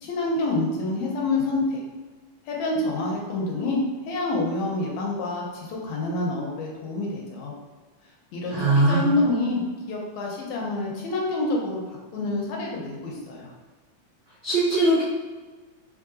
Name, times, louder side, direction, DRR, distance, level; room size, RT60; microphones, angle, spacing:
voice 1, 0.0-1.8 2.5-3.8 4.1-7.5 8.3-9.6 9.9-11.8 12.1-13.5, left 2 dB, 80° left, -2 dB, 1.9 m, -27 dB
voice 2, 8.5-9.1 14.4-15.0, right 2 dB, 85° right, -9 dB, 1.0 m, -20 dB
4.6 x 3.0 x 2.5 m, 1.3 s
omnidirectional pair, 3.5 m